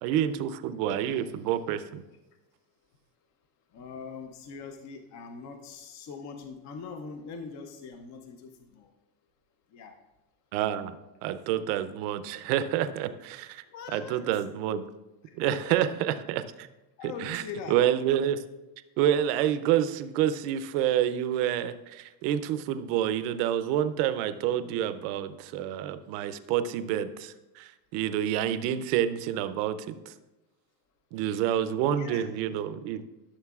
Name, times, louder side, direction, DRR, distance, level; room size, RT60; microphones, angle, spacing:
voice 1, 0.0-2.0 10.5-11.0 11.2-13.6 13.9-14.9 15.4-16.7 17.2-17.4 17.7-18.4 19.0-30.1 31.1-33.0, right 10 dB, 80° right, 12 dB, 0.7 m, -28 dB
voice 2, 3.7-8.9 9.7-10.0 13.7-14.4 15.3-15.8 17.0-17.8 32.0-32.2, left 5 dB, 35° left, 6 dB, 0.6 m, -42 dB
13.0 x 6.5 x 2.4 m, 1.0 s
cardioid pair, 145°, 49 cm